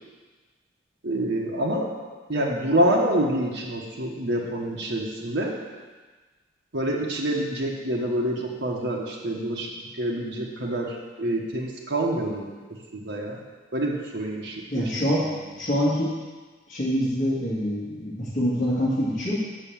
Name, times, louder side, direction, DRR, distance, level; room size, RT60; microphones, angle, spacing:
voice 1, 1.0-1.9 2.3-5.5 6.7-9.7 10.0-12.5 12.9-13.4 13.7-14.9, right 1 dB, 80° right, -3 dB, 1.2 m, -26 dB
voice 2, 14.7-15.2 15.6-16.1 16.7-19.4, equal, 40° left, -10 dB, 1.9 m, -25 dB
8.0 x 5.7 x 7.1 m, 1.3 s
head